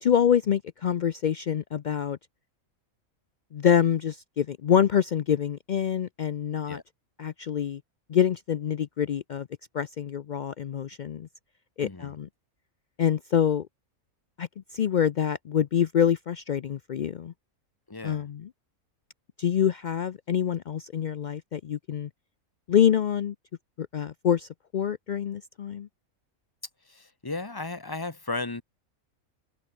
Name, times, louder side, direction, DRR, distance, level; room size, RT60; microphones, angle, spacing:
voice 1, 0.0-2.2 3.5-6.8 7.2-7.8 8.1-9.5 9.7-11.3 11.8-12.3 13.0-13.7 14.4-17.3 18.0-18.5 19.4-22.1 22.7-23.3 23.8-25.9, left 9 dB, 80° left, 0.4 m, -26 dB
voice 2, 11.8-12.2 17.9-18.3 26.8-28.6, left 3 dB, 15° left, 1.1 m, -35 dB
omnidirectional pair, 1.5 m